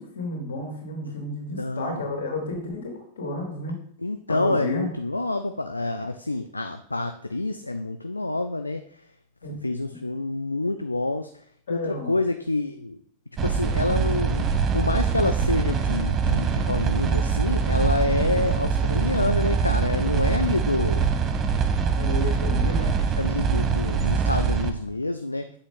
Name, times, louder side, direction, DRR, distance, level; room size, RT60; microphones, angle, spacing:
voice 1, 0.0-3.8 4.3-4.9 9.4-9.5 11.7-12.1 21.8-23.0, left 1 dB, 65° left, 0 dB, 3.1 m, -31 dB
voice 2, 1.6-2.0 4.0-8.8 9.5-11.3 11.7-13.0 13.4-14.5 14.7-21.1 23.2-25.5, left 2 dB, 85° left, 8 dB, 0.4 m, -27 dB
sound 1, 13.4-24.7, right 6 dB, 30° right, 0.9 m, -23 dB
8.8 x 7.3 x 3.8 m, 0.63 s
figure-of-eight pair, 90°, 0 cm